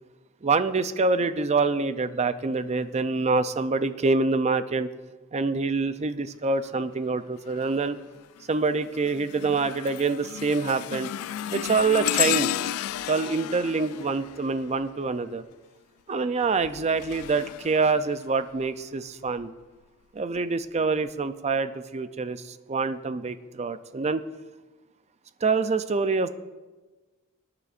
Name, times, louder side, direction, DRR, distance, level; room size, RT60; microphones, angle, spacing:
voice 1, 0.4-4.9 5.3-8.0 8.5-11.1 11.5-12.5 13.1-15.4 16.1-19.5 20.1-24.2 25.4-26.3, right 4 dB, 30° right, 11 dB, 0.5 m, -26 dB
sound 1, 7.5-7.9 8.4-15.2 16.4-18.6 19.3-19.5 20.4-20.5, left 12 dB, 80° left, 0.3 m, -33 dB
20.5 x 9.6 x 2.5 m, 1.2 s
head